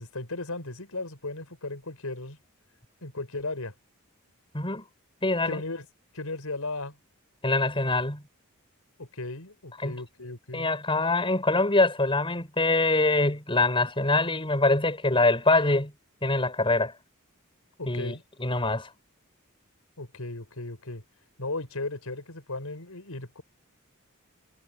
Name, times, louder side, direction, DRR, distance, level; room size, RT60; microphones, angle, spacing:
voice 1, 0.0-2.4 3.0-3.7 5.4-5.8 6.1-7.0 9.0-10.7 17.8-18.2 20.0-21.0 21.4-23.4, left 2 dB, 85° left, 5.0 m, -36 dB
voice 2, 5.2-5.6 7.4-8.2 9.8-9.9 10.5-15.9 16.2-16.9 17.9-18.1 18.4-18.9, left 2 dB, 25° left, 5.5 m, -24 dB
head